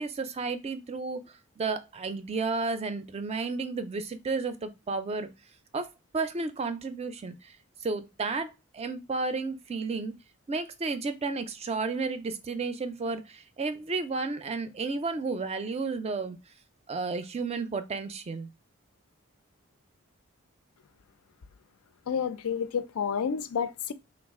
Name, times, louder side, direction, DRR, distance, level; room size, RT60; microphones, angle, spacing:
voice 1, 0.0-5.3 5.7-5.9 6.1-10.1 10.5-16.4 16.9-18.5, right 4 dB, 30° right, 0.4 m, -32 dB
voice 2, 22.1-23.9, left 7 dB, 80° left, 0.4 m, -30 dB
3.1 x 2.4 x 3.5 m
head